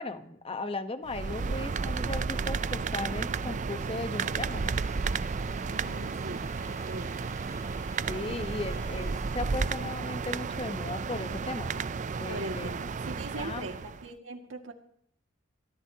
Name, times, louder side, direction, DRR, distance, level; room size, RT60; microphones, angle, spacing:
voice 1, 0.0-4.7 8.1-11.8 12.2-12.7 13.3-13.7, left 2 dB, 30° left, 9 dB, 1.1 m, -37 dB
sound 1, 1.1-14.1, right 5 dB, 40° right, 0.4 m, -32 dB
Bowed string instrument, 4.2-9.7, left 4 dB, 85° left, 4.1 m, -54 dB
voice 2, 5.7-7.2 8.1-8.6 12.3-14.7, right 1 dB, 85° right, 4 dB, 2.1 m, -41 dB
23.5 x 14.5 x 2.9 m, 0.69 s
head